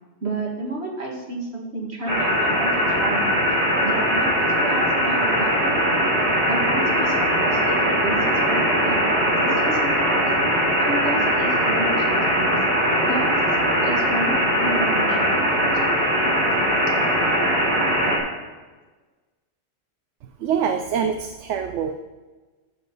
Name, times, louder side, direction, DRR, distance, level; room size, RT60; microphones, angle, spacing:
voice 1, 0.2-3.3 3.8-10.3 10.8-12.6 12.8-13.6 13.8-15.5, right 2 dB, 65° right, -1 dB, 2.2 m, -31 dB
sound 1, 2.1-18.2, equal, 40° right, 2.7 m, -20 dB
voice 2, 20.4-21.9, right 7 dB, 85° right, 6 dB, 1.0 m, -24 dB
13.5 x 7.2 x 3.9 m, 1.3 s
omnidirectional pair, 1.2 m